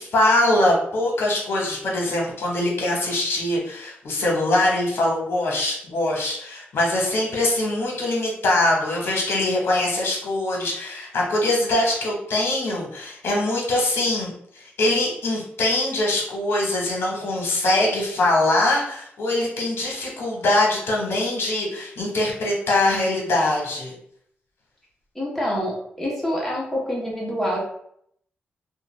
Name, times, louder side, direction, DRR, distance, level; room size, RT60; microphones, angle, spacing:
voice 1, 0.0-23.9, left 1 dB, 70° left, -2 dB, 1.0 m, -23 dB
voice 2, 25.1-27.6, equal, 5° left, -4 dB, 1.0 m, -26 dB
2.4 x 2.2 x 3.1 m, 0.69 s
wide cardioid pair, 135°, 4 cm